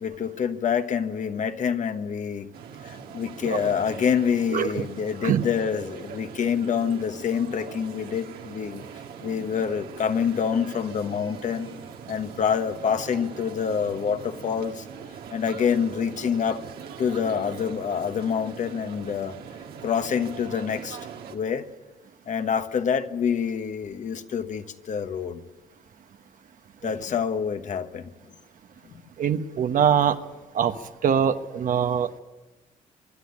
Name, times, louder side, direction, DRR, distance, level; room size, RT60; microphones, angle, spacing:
voice 1, 0.0-2.5 2.8-8.8 9.2-11.7 12.1-14.8 15.3-16.6 17.0-19.4 19.8-21.0 21.3-21.6 22.3-25.4 26.8-28.1 28.8-29.0, left 7 dB, 55° left, 1.3 m, -26 dB
sound 1, 2.5-21.4, right 7 dB, 80° right, 2.1 m, -41 dB
voice 2, 4.5-4.8 5.2-5.4 26.8-26.9 29.2-30.2 30.5-30.7 31.0-32.2, right 8 dB, 60° right, 1.2 m, -23 dB
25.0 x 11.5 x 9.8 m
cardioid pair, 85°, 15 cm